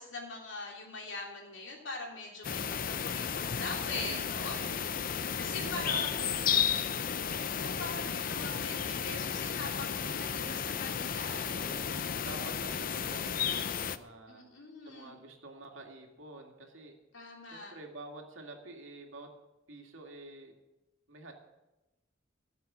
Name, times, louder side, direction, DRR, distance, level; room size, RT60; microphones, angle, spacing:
voice 1, 0.0-3.3 3.5-4.6 5.4-6.1 7.2-11.5 14.3-15.2 17.1-17.7, left 3 dB, 70° left, -1 dB, 3.4 m, -42 dB
sound 1, 2.4-14.0, left 8 dB, 45° left, 0.5 m, -33 dB
voice 2, 2.5-2.8 3.9-4.8 5.5-6.9 11.2-14.4 14.8-16.9 17.4-19.3 19.7-20.5 21.1-21.3, right 2 dB, 80° right, 2 dB, 2.2 m, -48 dB
15.5 x 7.3 x 7.4 m, 1.0 s
head